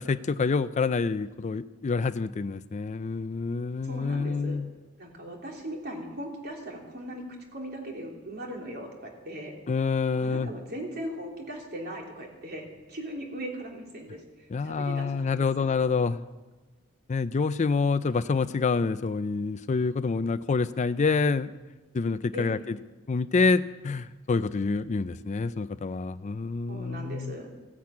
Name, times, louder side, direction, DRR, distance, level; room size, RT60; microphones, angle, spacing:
voice 1, 0.0-4.7 9.7-10.5 14.5-16.2 17.1-21.5 21.9-22.8 23.1-27.3, left 4 dB, 35° left, 14 dB, 0.4 m, -27 dB
voice 2, 3.8-4.6 5.0-7.2 7.5-9.6 10.1-15.9 18.1-18.3 22.3-22.6 26.7-27.5, right 1 dB, 50° right, 0 dB, 3.3 m, -39 dB
16.0 x 10.5 x 8.5 m, 1.2 s
head